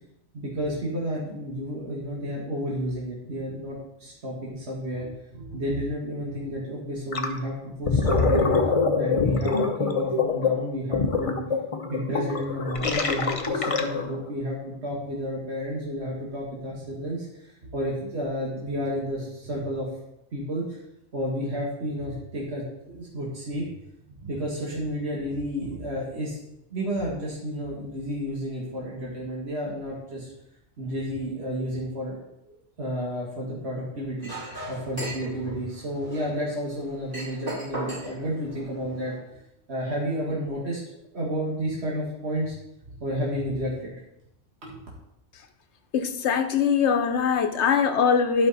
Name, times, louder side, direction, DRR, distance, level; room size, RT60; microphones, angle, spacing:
voice 1, 0.3-7.5 7.8-8.5 9.0-11.4 11.8-19.9 20.3-20.8 21.1-23.8 24.2-26.4 26.7-30.3 30.8-32.2 32.5-34.3 34.6-39.4 39.7-40.8 41.1-42.5 42.8-43.9 44.6-44.8, equal, 70° right, -5 dB, 2.0 m, -31 dB
Gurgling, 7.1-7.4 7.7-14.2, left 4 dB, 35° left, 0.7 m, -24 dB
Chink clink, 34.2-39.2, right 1 dB, 50° right, 4.2 m, -39 dB
voice 2, 45.9-48.5, left 6 dB, 90° left, 7 dB, 1.1 m, -22 dB
11.5 x 5.2 x 4.0 m, 0.84 s
omnidirectional pair, 1.1 m